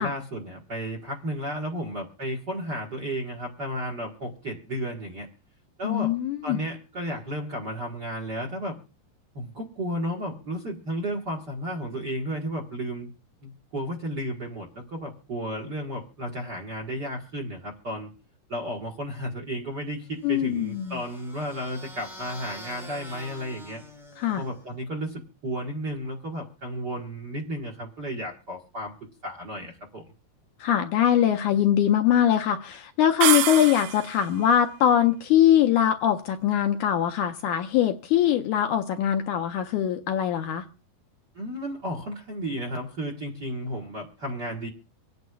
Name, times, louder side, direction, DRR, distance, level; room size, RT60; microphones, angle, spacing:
voice 1, 0.0-5.3 5.8-6.2 6.4-8.8 9.3-13.1 13.4-18.1 18.5-23.8 24.4-28.9 29.2-30.1 41.3-44.7, equal, 50° right, -1 dB, 1.3 m, -33 dB
voice 2, 5.8-6.6 20.2-21.0 24.2-24.4 30.6-40.7, left 10 dB, 75° left, 6 dB, 1.9 m, -22 dB
sound 1, 20.2-24.8, left 1 dB, ahead, 0.6 m, -46 dB
sound 2, 33.2-34.3, right 11 dB, 80° right, 2.7 m, -25 dB
26.0 x 9.4 x 2.3 m, 0.33 s
omnidirectional pair, 4.1 m